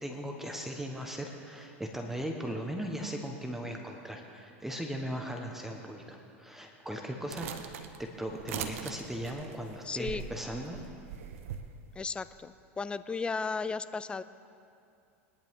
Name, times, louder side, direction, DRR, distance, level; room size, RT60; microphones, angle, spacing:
voice 1, 0.0-7.7 8.0-10.8, equal, 5° right, 2 dB, 1.3 m, -38 dB
sound 1, 7.3-11.7, right 8 dB, 75° right, 0.9 m, -41 dB
voice 2, 9.8-10.2 12.0-14.2, left 4 dB, 15° left, 14 dB, 0.4 m, -35 dB
20.5 x 11.0 x 3.7 m, 2.5 s
hypercardioid pair, 110°, 7 cm